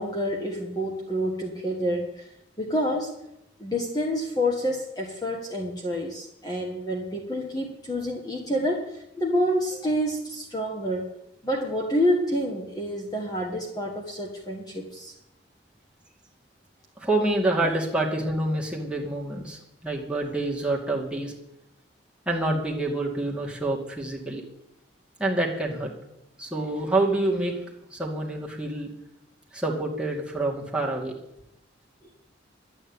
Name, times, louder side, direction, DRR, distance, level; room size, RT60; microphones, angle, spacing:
voice 1, 0.0-2.3 2.6-3.1 3.6-11.1 11.4-15.1, equal, 20° left, 0 dB, 1.6 m, -28 dB
voice 2, 17.0-21.3 22.3-24.4 25.2-25.9 26.4-27.6 27.9-28.9 29.5-31.1, right 2 dB, 5° right, -2 dB, 2.4 m, -27 dB
12.0 x 9.0 x 8.9 m, 0.87 s
head